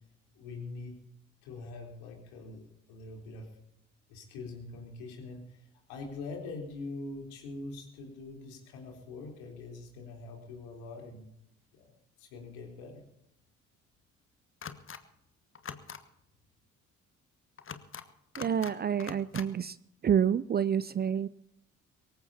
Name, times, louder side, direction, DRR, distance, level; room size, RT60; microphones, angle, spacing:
voice 1, 0.3-1.0 1.4-3.5 4.1-11.3 11.7-11.9 12.2-13.0, left 3 dB, 65° left, 1 dB, 3.9 m, -43 dB
sound 1, 14.6-15.0 15.5-16.0 17.6-18.0 18.3-18.7 19.0-19.5, left 7 dB, 35° left, 1.3 m, -42 dB
voice 2, 18.4-19.8 20.0-21.3, right 8 dB, 25° right, 18 dB, 0.5 m, -28 dB
24.0 x 14.5 x 2.8 m, 0.76 s
figure-of-eight pair, 45°, 38 cm